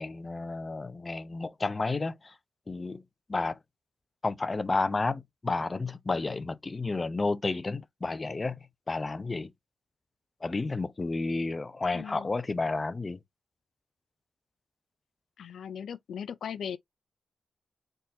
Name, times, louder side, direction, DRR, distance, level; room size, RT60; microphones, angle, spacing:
voice 1, 0.0-2.3 2.7-3.0 3.3-3.6 4.2-8.6 8.9-9.5 10.4-13.2, left 3 dB, 30° left, 0.6 m, -31 dB
voice 2, 11.9-12.3 15.4-16.8, left 8 dB, 85° left, 0.3 m, -38 dB
4.4 x 3.7 x 2.6 m
cardioid pair, 100°, 0 cm